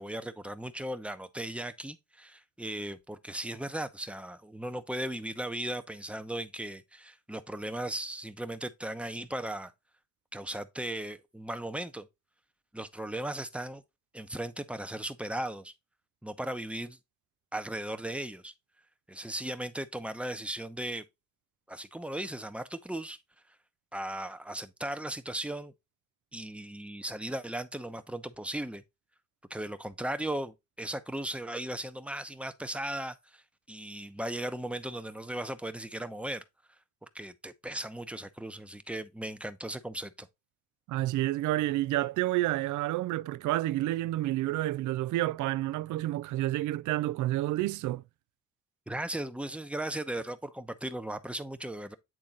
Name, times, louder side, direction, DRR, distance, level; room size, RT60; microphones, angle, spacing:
voice 1, 0.0-9.7 10.3-12.1 12.7-13.8 14.1-15.7 16.2-17.0 17.5-18.5 19.1-21.0 21.7-23.2 23.9-25.7 26.3-28.8 29.5-33.4 33.7-36.4 37.0-40.3 48.9-51.9, right 1 dB, 5° right, 0.8 m, -37 dB
voice 2, 40.9-48.0, right 16 dB, 75° right, 0.5 m, -29 dB
8.9 x 3.7 x 3.8 m
cardioid pair, 90°, 30 cm